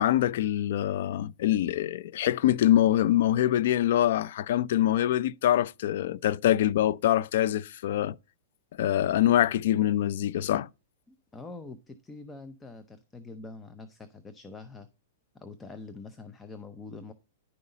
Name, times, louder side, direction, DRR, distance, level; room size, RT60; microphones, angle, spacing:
voice 1, 0.0-8.1 8.8-10.7, left 12 dB, 60° left, 0.4 m, -24 dB
voice 2, 11.1-14.9 15.3-17.1, left 3 dB, 10° left, 0.6 m, -45 dB
10.5 x 5.5 x 3.9 m
hypercardioid pair, 155°, 0 cm